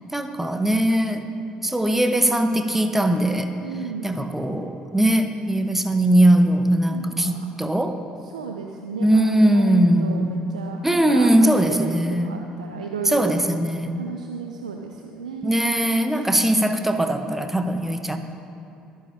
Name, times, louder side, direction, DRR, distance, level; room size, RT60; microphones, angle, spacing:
voice 1, 0.1-1.3 1.6-3.5 4.0-8.0 9.0-10.4 10.8-12.5 13.1-14.0 15.4-18.2, right 1 dB, 5° right, 7 dB, 1.0 m, -20 dB
voice 2, 3.6-4.2 6.9-7.4 8.2-13.4 13.9-15.6 16.1-16.3, right 5 dB, 85° right, 2 dB, 0.5 m, -34 dB
23.5 x 8.7 x 2.8 m, 2.8 s
hypercardioid pair, 55°, 4 cm